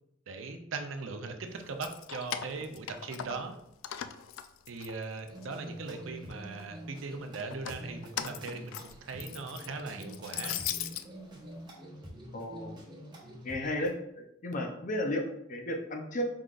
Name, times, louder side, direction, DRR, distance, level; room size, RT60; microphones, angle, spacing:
voice 1, 0.3-3.5 4.7-10.6, right 4 dB, 75° right, 5 dB, 0.6 m, -39 dB
Keys jangling, 1.6-3.6 3.8-5.5 5.9-6.6 7.4-11.1, left 10 dB, 80° left, 0.3 m, -39 dB
sound 1, 5.3-13.9, equal, 25° right, 1.0 m, -47 dB
voice 2, 12.3-12.8 13.4-13.9 14.4-16.3, left 1 dB, 40° left, 3 dB, 0.6 m, -33 dB
4.7 x 3.8 x 2.4 m, 0.77 s
head